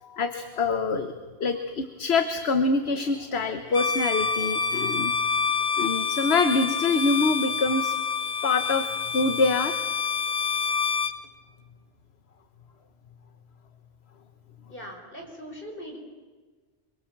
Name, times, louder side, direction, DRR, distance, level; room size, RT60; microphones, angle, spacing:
voice 1, 0.0-1.1 1.4-5.1 5.8-8.0 8.4-9.8, left 3 dB, 80° left, 7 dB, 1.4 m, -25 dB
Bowed string instrument, 3.7-11.2, left 5 dB, 45° left, 1.1 m, -27 dB
voice 2, 14.7-16.0, equal, 60° left, 2 dB, 5.0 m, -40 dB
25.5 x 23.5 x 7.4 m, 1.4 s
omnidirectional pair, 1.1 m